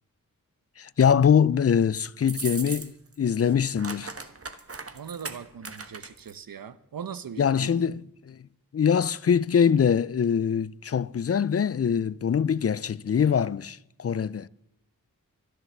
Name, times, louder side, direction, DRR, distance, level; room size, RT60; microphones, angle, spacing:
voice 1, 0.8-4.1 7.4-8.0 8.3-8.4 8.7-14.5, left 7 dB, 45° left, 0.5 m, -23 dB
sound 1, 2.2-3.1 3.4-6.3, right 4 dB, 40° right, 1.4 m, -38 dB
voice 2, 4.9-7.7, right 7 dB, 75° right, 0.9 m, -40 dB
13.0 x 11.0 x 7.2 m
cardioid pair, 55°, 34 cm